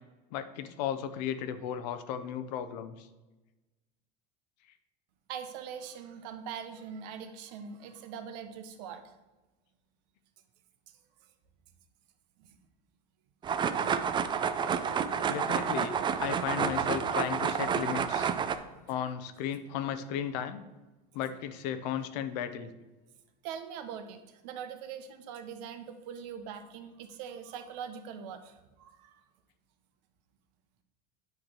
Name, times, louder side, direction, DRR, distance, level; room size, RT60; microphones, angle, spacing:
voice 1, 0.3-3.1 15.3-18.3 18.9-20.6 21.1-22.7, left 9 dB, 75° left, 11 dB, 0.7 m, -35 dB
voice 2, 5.3-9.1 12.4-12.5 18.2-18.9 23.4-29.2, right 7 dB, 75° right, 8 dB, 0.9 m, -42 dB
sound 1, 13.4-18.6, right 7 dB, 20° right, 0.4 m, -29 dB
9.2 x 3.3 x 5.9 m, 1.1 s
supercardioid pair, 120°, 21 cm